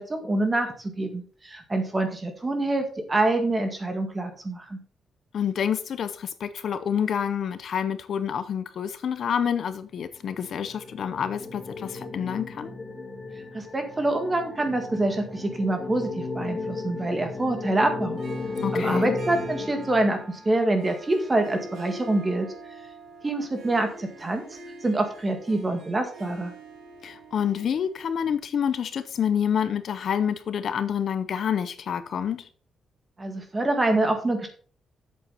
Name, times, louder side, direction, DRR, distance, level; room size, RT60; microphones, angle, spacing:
voice 1, 0.0-4.8 13.5-18.2 18.7-22.5 23.2-24.4 24.8-26.5 33.2-34.5, right 2 dB, 20° right, 5 dB, 1.8 m, -26 dB
voice 2, 5.3-12.7 18.6-19.2 27.0-32.5, left 8 dB, 55° left, 12 dB, 0.7 m, -28 dB
sound 1, 10.3-20.8, left 3 dB, 25° left, 2.1 m, -35 dB
Harp, 18.1-28.4, right 2 dB, 65° right, 4.0 m, -45 dB
7.9 x 7.9 x 4.2 m, 0.42 s
wide cardioid pair, 155°, 0 cm